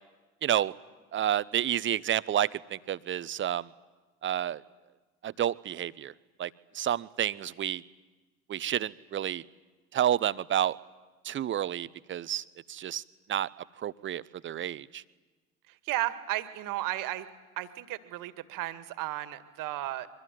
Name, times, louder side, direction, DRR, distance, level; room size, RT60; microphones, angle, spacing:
voice 1, 0.4-0.7 1.1-3.7 4.2-4.6 5.2-6.1 6.4-7.8 8.5-9.4 9.9-10.8 11.2-13.0 13.3-13.5 13.8-15.0, right 11 dB, 30° right, 19 dB, 0.9 m, -30 dB
voice 2, 15.7-17.3 17.6-20.1, right 15 dB, 50° right, 12 dB, 2.0 m, -34 dB
25.0 x 23.0 x 9.4 m, 1.2 s
figure-of-eight pair, 70°, 42 cm